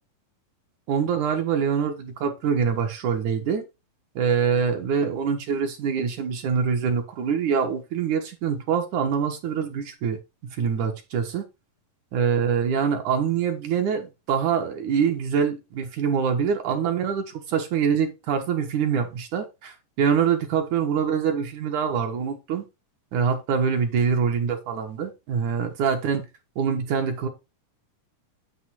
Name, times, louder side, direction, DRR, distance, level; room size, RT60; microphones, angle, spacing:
voice 1, 0.9-3.6 4.2-11.4 12.1-22.6 23.1-26.3 26.6-27.3, right 6 dB, 65° right, 2.4 m, -25 dB
9.8 x 3.6 x 6.1 m
omnidirectional pair, 4.0 m